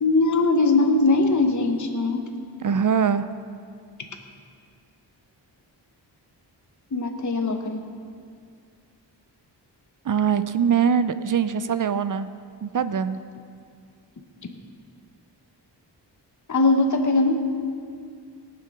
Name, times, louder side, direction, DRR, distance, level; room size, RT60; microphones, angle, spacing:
voice 1, 0.0-2.2 6.9-7.8 16.5-17.4, left 3 dB, 40° left, 4 dB, 1.1 m, -20 dB
voice 2, 2.6-3.3 10.0-12.3 12.6-13.2, right 7 dB, 50° right, 13 dB, 0.5 m, -22 dB
18.0 x 7.7 x 6.0 m, 2.3 s
wide cardioid pair, 95°, 43 cm